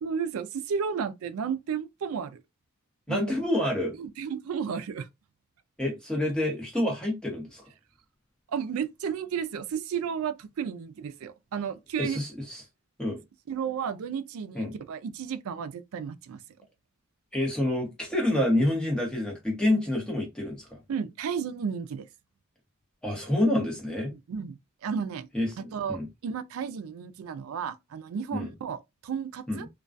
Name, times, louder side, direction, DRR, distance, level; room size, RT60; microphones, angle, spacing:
voice 1, 0.0-2.4 3.1-3.3 4.0-5.1 8.5-12.2 13.5-16.4 20.9-22.1 24.1-25.3 25.7-29.7, right 7 dB, 80° right, 0.4 m, -33 dB
voice 2, 3.1-3.9 5.8-7.6 12.0-12.6 13.0-13.2 14.5-14.7 17.3-20.8 23.0-24.1 25.3-26.1 28.3-28.5 29.5-29.7, left 1 dB, 5° left, 0.9 m, -28 dB
2.2 x 2.2 x 2.5 m
head